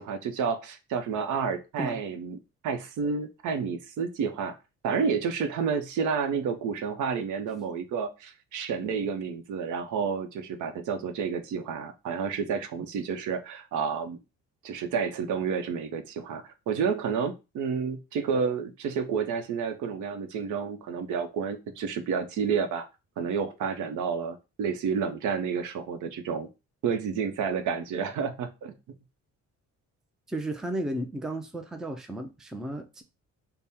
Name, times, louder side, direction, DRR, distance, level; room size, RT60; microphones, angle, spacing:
voice 1, 0.0-2.4 2.6-4.6 4.8-14.2 14.6-22.9 23.2-26.5 26.8-28.7, right 6 dB, 80° right, 0.7 m, -30 dB
voice 2, 30.3-33.0, right 1 dB, ahead, 0.3 m, -34 dB
3.5 x 2.1 x 4.2 m
cardioid pair, 145°, 30 cm